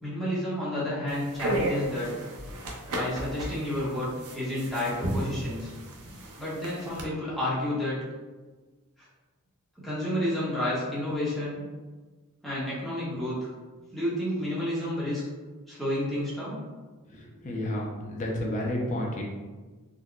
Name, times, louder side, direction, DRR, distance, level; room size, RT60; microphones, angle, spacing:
voice 1, 0.0-2.1 2.9-5.7 6.4-8.0 9.8-11.6 12.4-13.5 13.9-15.2 15.7-16.6, left 1 dB, ahead, -10 dB, 1.0 m, -30 dB
sound 1, 1.1-7.0, right 1 dB, 75° right, 0.5 m, -34 dB
voice 2, 17.1-19.3, left 1 dB, 35° left, -1 dB, 0.5 m, -31 dB
3.7 x 2.2 x 2.2 m, 1.3 s
head